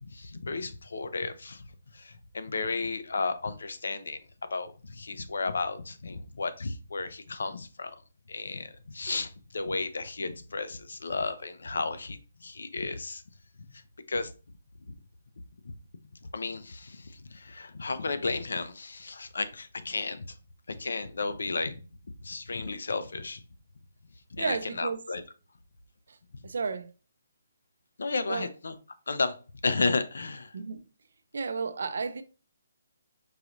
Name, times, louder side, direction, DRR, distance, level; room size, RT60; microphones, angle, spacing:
voice 1, 0.0-1.6 1.9-4.2 4.5-8.0 8.3-13.2 13.7-13.8 14.1-14.3 14.9-15.0 15.6-15.7 16.3-20.3 20.7-21.8 22.2-23.4 24.3-25.2 28.0-28.8 29.1-29.3 29.6-30.5, left 3 dB, 80° left, 0.5 m, -33 dB
voice 2, 24.4-25.0 26.1-26.2 26.4-26.9 28.3-28.5 30.5-30.8 31.3-32.2, right 4 dB, 65° right, 0.4 m, -32 dB
4.7 x 2.5 x 2.9 m
hypercardioid pair, 170°, 0 cm